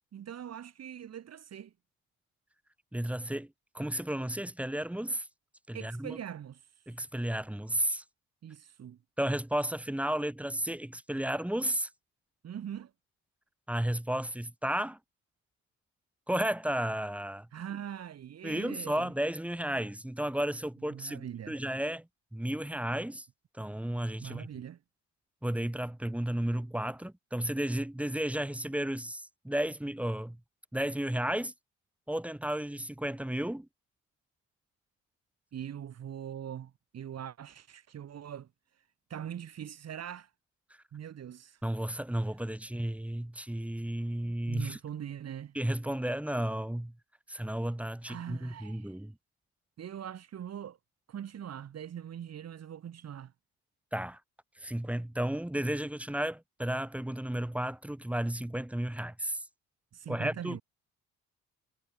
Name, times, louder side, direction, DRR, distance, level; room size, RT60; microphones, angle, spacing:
voice 1, 0.1-1.7 5.7-6.8 8.4-9.0 12.4-12.9 17.5-19.1 20.9-21.6 24.2-24.8 35.5-38.5 38.8-38.9 39.1-40.3 40.9-41.6 44.2-45.6 48.1-49.0 49.8-50.8 51.1-53.3 59.9-60.6, right 9 dB, 55° right, 2.2 m, -42 dB
voice 2, 2.9-5.3 5.7-6.2 6.9-8.0 9.2-11.9 13.7-15.0 16.3-17.5 18.4-22.1 22.3-23.3 23.6-24.5 25.4-30.4 30.7-31.5 32.1-33.7 41.6-44.8 45.5-46.9 47.3-49.1 53.9-54.2 54.6-59.4 60.1-60.6, right 1 dB, 5° right, 0.9 m, -33 dB
cardioid pair, 90°, 30 cm